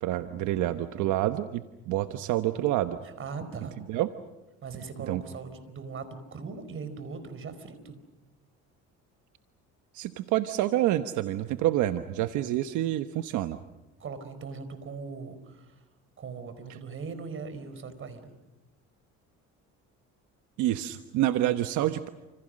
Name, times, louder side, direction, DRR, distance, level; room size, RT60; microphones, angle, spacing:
voice 1, 0.0-3.0 3.9-4.1 5.0-5.2 9.9-13.6 20.6-22.1, right 14 dB, 80° right, 9 dB, 1.2 m, -28 dB
voice 2, 3.0-3.8 4.6-8.0 14.0-15.8 16.2-18.3, right 5 dB, 45° right, 11 dB, 4.6 m, -40 dB
29.5 x 27.5 x 6.5 m, 1.0 s
cardioid pair, 110°, 30 cm